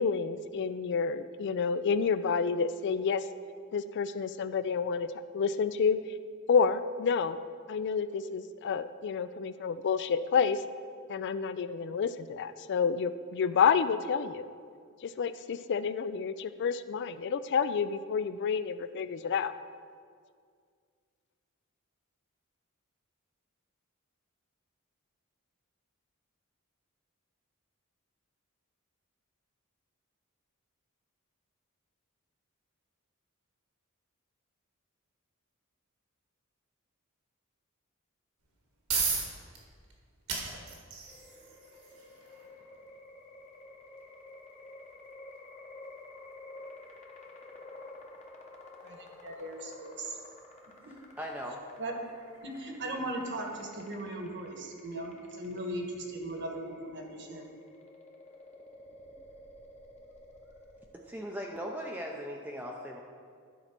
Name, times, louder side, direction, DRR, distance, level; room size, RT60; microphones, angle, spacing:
voice 1, 0.0-3.2 3.7-5.1 5.3-6.0 6.5-7.4 7.7-10.6 11.1-14.5 15.0-19.5, left 6 dB, 55° left, 13 dB, 0.4 m, -29 dB
sound 1, 38.4-53.3, right 5 dB, 80° right, 1.7 m, -41 dB
sound 2, 41.1-60.9, left 2 dB, 35° left, 1.1 m, -51 dB
voice 2, 48.8-50.2 51.8-51.9 52.4-57.5, right 1 dB, 55° right, 3 dB, 1.2 m, -38 dB
voice 3, 50.8-51.6 60.9-63.0, equal, 5° right, -1 dB, 0.5 m, -39 dB
11.5 x 4.4 x 5.9 m, 2.1 s
head